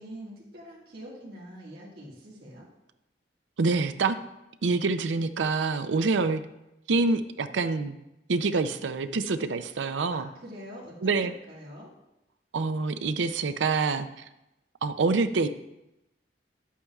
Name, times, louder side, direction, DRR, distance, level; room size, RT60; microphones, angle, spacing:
voice 1, 0.0-2.7 10.1-11.9, equal, 55° right, -8 dB, 2.0 m, -44 dB
voice 2, 3.6-4.2 4.6-6.4 6.9-8.0 8.3-10.3 11.0-11.3 12.5-14.2 14.8-15.5, right 4 dB, 90° right, 11 dB, 0.5 m, -26 dB
11.0 x 8.4 x 2.4 m, 0.92 s
head